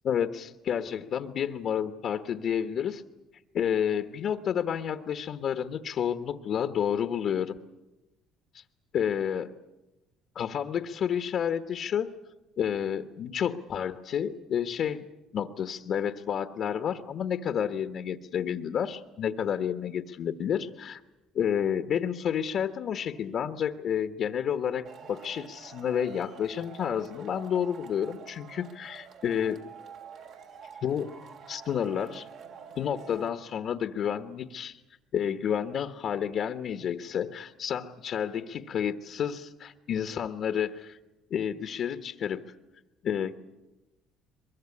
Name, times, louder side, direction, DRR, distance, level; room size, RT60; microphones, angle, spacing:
voice 1, 0.0-3.0 3.5-7.5 8.5-8.6 8.9-9.5 10.3-12.1 12.6-15.1 15.3-21.0 21.3-29.6 30.8-31.1 31.5-32.3 32.8-34.8 35.1-41.0 41.3-42.5 43.0-43.4, left 8 dB, 55° left, 9 dB, 1.1 m, -30 dB
Male speech man speaking / Shout / Clapping, 24.8-33.3, right 7 dB, 65° right, 3.0 m, -48 dB
22.5 x 22.5 x 9.8 m, 1.0 s
cardioid pair, 110°, 0 cm